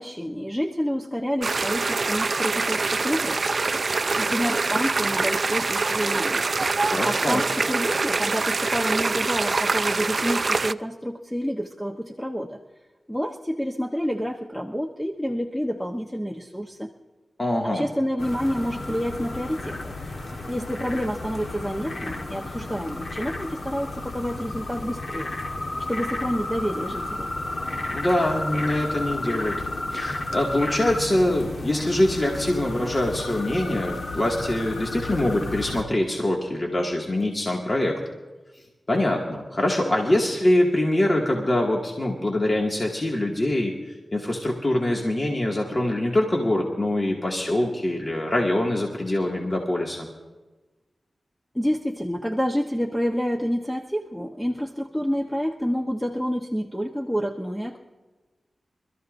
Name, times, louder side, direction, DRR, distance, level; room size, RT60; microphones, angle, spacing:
voice 1, 0.0-3.4 4.1-6.4 7.0-12.6 13.1-16.9 17.6-19.9 20.5-25.4 25.9-27.3 51.5-57.8, equal, 5° left, 1 dB, 1.0 m, -28 dB
sound 1, 1.4-10.7, right 3 dB, 60° right, 0.4 m, -24 dB
voice 2, 6.8-7.4 17.4-17.8 27.9-29.6 29.9-38.0 38.9-43.8 44.1-50.1, left 1 dB, 35° left, -1 dB, 2.1 m, -24 dB
sound 2, 18.2-35.8, left 2 dB, 65° left, 1.5 m, -32 dB
25.5 x 13.5 x 2.6 m, 1.2 s
cardioid pair, 50°, 0 cm